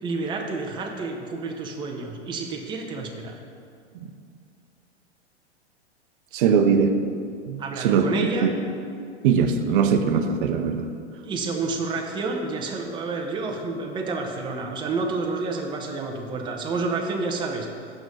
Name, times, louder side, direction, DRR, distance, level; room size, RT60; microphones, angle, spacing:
voice 1, 0.0-3.4 7.6-8.5 11.2-17.7, right 3 dB, 15° right, 1 dB, 0.7 m, -29 dB
voice 2, 6.3-6.9 7.5-8.5 9.2-10.8, right 6 dB, 50° right, 7 dB, 0.7 m, -21 dB
6.0 x 5.4 x 6.3 m, 2.3 s
figure-of-eight pair, 105°, 35 cm